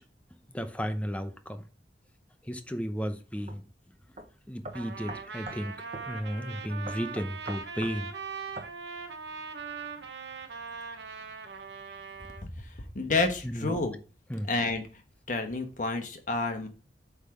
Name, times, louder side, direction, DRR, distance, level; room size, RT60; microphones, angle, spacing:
voice 1, 0.5-1.6 2.5-3.6 4.5-5.7 6.1-8.1 13.4-13.8 14.3-14.5, equal, 5° left, 0.7 m, -34 dB
sound 1, 3.5-3.6 4.2-4.3 4.6-5.6 5.9-6.1 6.9-8.0 8.6-8.7, right 2 dB, 40° right, 1.0 m, -41 dB
Trumpet, 4.7-12.4, right 5 dB, 75° right, 1.2 m, -41 dB
voice 2, 12.9-14.0 14.5-14.8 15.3-16.7, left 3 dB, 45° left, 1.2 m, -29 dB
8.2 x 3.7 x 4.8 m
head